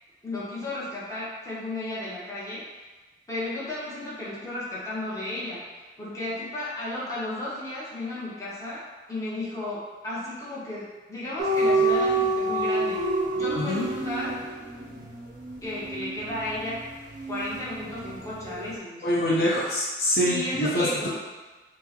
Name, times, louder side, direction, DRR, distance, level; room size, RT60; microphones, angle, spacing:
voice 1, 0.2-2.6 3.3-5.6 6.0-8.8 9.1-13.0 13.3-14.3 15.0-15.1 15.6-16.8 17.3-19.2 20.2-21.1, left 1 dB, 20° left, -8 dB, 0.7 m, -34 dB
sound 1, 11.4-18.2 18.4-18.7, right 2 dB, 45° right, 0.5 m, -27 dB
voice 2, 19.0-20.9, equal, 55° left, -5 dB, 0.6 m, -24 dB
4.4 x 2.0 x 2.9 m, 1.3 s
head